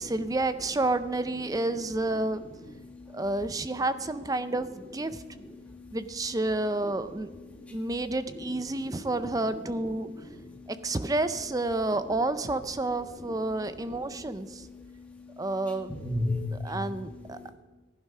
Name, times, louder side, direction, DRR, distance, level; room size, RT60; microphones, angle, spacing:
voice 1, 0.0-2.4 3.1-5.2 5.9-7.3 7.7-10.1 10.7-14.7 15.4-16.0 16.5-17.5, right 2 dB, 15° right, 11 dB, 0.5 m, -30 dB
voice 2, 2.8-3.2 5.6-6.0 7.6-7.8 8.9-9.0 10.5-10.7 14.5-15.4 15.9-16.7 17.3-17.5, left 2 dB, 5° left, 1 dB, 1.7 m, -35 dB
15.5 x 11.5 x 5.5 m, 1.2 s
head